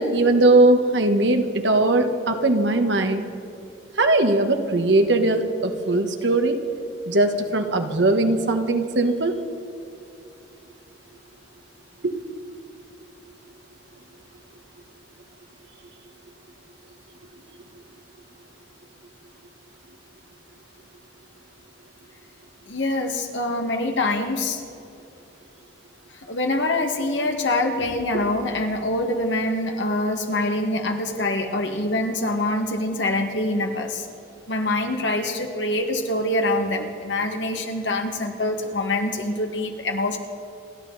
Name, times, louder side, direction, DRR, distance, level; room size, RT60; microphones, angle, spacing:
voice 1, 0.0-3.2 4.0-6.6 7.1-9.3 12.0-12.2, right 2 dB, 75° right, 6 dB, 1.3 m, -20 dB
voice 2, 22.7-24.6 26.3-34.1 34.5-40.2, left 2 dB, 90° left, 3 dB, 1.8 m, -25 dB
29.5 x 11.5 x 4.1 m, 2.6 s
head